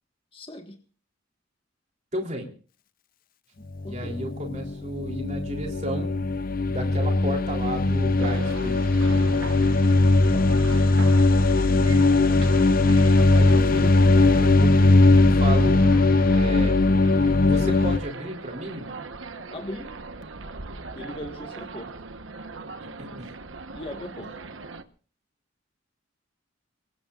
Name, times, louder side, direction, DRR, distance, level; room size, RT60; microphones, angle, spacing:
voice 1, 0.3-0.8 3.6-4.2 10.3-10.5 19.5-19.9 20.9-21.9 23.7-24.3, left 1 dB, 25° left, 4 dB, 1.6 m, -39 dB
voice 2, 2.1-2.5 3.9-6.1 6.7-8.9 13.3-15.8 16.3-16.8 17.4-18.9 23.0-23.3, equal, 35° right, 1 dB, 3.5 m, -33 dB
sound 1, 3.8-18.0, left 2 dB, 45° left, 0.6 m, -19 dB
sound 2, 8.2-24.8, right 3 dB, 80° right, 1.1 m, -39 dB
24.0 x 18.5 x 2.5 m, 0.40 s
head